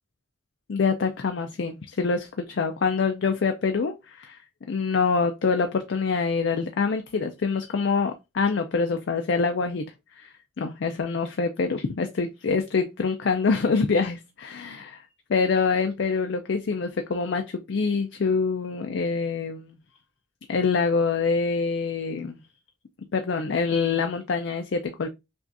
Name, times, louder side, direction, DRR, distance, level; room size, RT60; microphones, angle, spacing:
voice 1, 0.7-4.4 4.7-9.9 10.2-19.8 20.5-22.4 23.1-25.1, left 4 dB, 65° left, 0.4 m, -25 dB
5.9 x 2.4 x 2.6 m
head